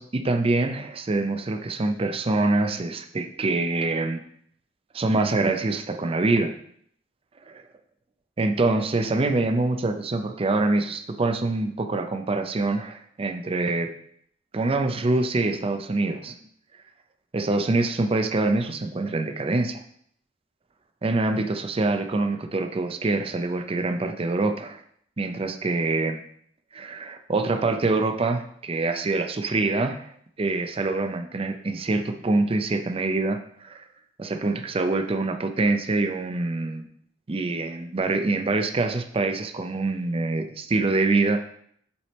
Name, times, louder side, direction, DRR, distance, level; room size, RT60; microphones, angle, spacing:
voice 1, 0.0-4.2 4.9-6.5 7.5-7.6 8.4-13.9 14.5-16.3 17.3-19.8 21.0-24.8 25.2-26.2 26.7-30.1 30.4-33.8 34.2-36.9 37.3-41.4, right 2 dB, 30° right, 7 dB, 0.5 m, -25 dB
7.0 x 3.3 x 4.2 m, 0.66 s
head